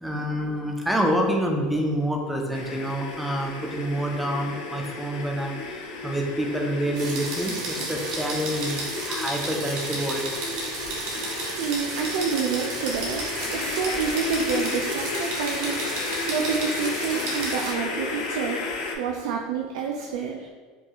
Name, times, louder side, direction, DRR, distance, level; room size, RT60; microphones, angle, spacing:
voice 1, 0.0-8.8 9.1-10.3, equal, ahead, 0 dB, 0.4 m, -27 dB
sound 1, 2.5-19.0, left 3 dB, 85° left, 0.6 m, -33 dB
sound 2, 6.9-17.7, right 2 dB, 55° right, 0.8 m, -33 dB
voice 2, 11.6-20.5, right 6 dB, 80° right, 2 dB, 0.3 m, -29 dB
4.5 x 2.4 x 2.9 m, 1.5 s
cardioid pair, 170°, 3 cm